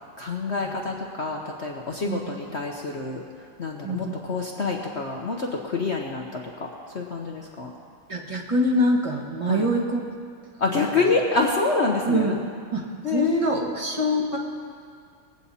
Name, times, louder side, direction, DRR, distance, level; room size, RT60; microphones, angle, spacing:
voice 1, 0.2-3.2 3.6-6.7 6.9-7.7 9.5-9.7 10.6-12.3 13.0-13.6, left 3 dB, 50° left, 0 dB, 0.9 m, -27 dB
voice 2, 3.8-4.1 8.1-10.0 12.0-12.3 12.7-14.4, equal, 20° right, -1 dB, 1.2 m, -24 dB
21.0 x 8.4 x 4.2 m, 2.3 s
omnidirectional pair, 2.0 m